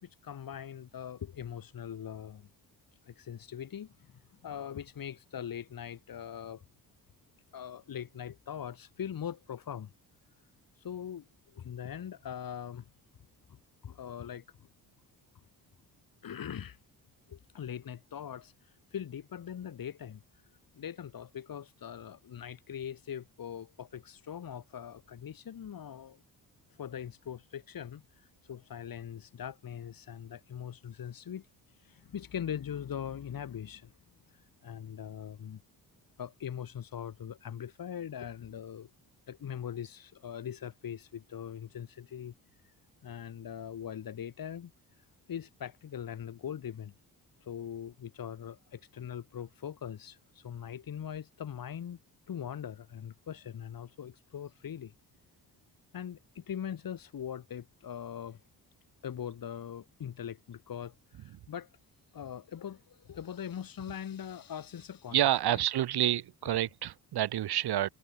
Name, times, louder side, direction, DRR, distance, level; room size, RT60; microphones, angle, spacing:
voice 1, 0.0-2.5 3.0-4.1 4.4-6.6 7.5-9.9 10.8-12.9 13.5-13.6 13.8-14.7 16.2-16.8 17.3-18.5 18.9-20.2 20.7-26.2 26.8-28.0 28.5-31.5 31.8-33.9 34.6-35.6 36.2-38.9 39.3-42.3 43.0-44.7 45.3-46.9 47.4-52.0 52.3-54.9 55.9-58.4 59.0-61.7 62.1-65.2 65.5-65.6 66.5-66.6, left 9 dB, 60° left, 3.8 m, -41 dB
voice 2, 65.1-67.9, right 12 dB, 75° right, 1.4 m, -28 dB
cardioid pair, 100°, 39 cm